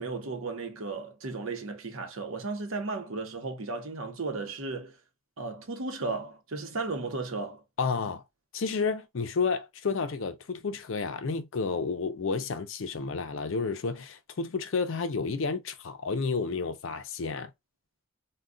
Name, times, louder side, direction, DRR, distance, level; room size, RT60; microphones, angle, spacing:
voice 1, 0.0-5.0 5.4-7.6, right 3 dB, 70° right, 0.8 m, -35 dB
voice 2, 7.8-8.2 8.5-17.5, left 4 dB, 60° left, 0.5 m, -31 dB
2.3 x 2.2 x 3.7 m
head